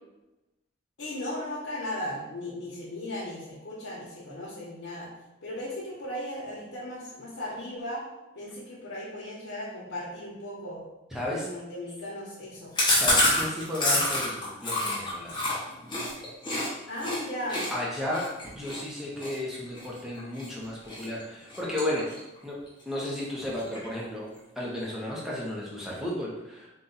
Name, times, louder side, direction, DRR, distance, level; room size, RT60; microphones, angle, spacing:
voice 1, 1.0-5.1 5.4-8.0 8.3-10.8 11.2-12.7 16.9-17.7, left 1 dB, 75° left, -7 dB, 0.9 m, -36 dB
voice 2, 11.1-11.4 13.0-15.6 17.7-22.1 22.4-22.6 22.9-24.3 24.6-26.7, left 1 dB, ahead, -5 dB, 0.7 m, -33 dB
Chewing mastication, 12.8-16.7 17.0-17.2 17.5-20.5 20.9-21.2 21.5-22.4 22.7-22.8 23.1-23.2 23.5-24.0, left 1 dB, 20° left, 1.0 m, -27 dB
3.9 x 2.3 x 3.8 m, 0.99 s
head